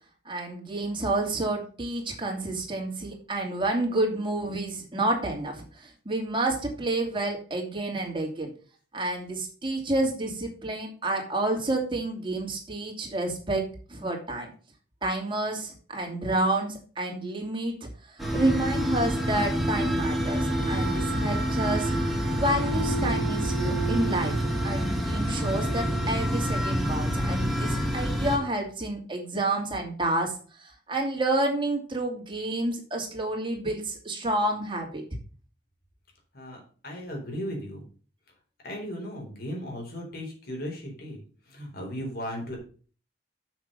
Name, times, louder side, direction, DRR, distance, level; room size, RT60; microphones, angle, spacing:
voice 1, 0.2-8.5 8.9-14.5 15.0-24.4 24.6-35.0, right 2 dB, 30° right, 1 dB, 2.8 m, -29 dB
sound 1, 18.2-28.4, equal, ahead, 2.4 m, -27 dB
voice 2, 36.3-37.8 38.6-41.2 41.5-42.6, equal, 60° left, 0 dB, 4.1 m, -36 dB
7.3 x 6.5 x 6.7 m, 0.40 s
head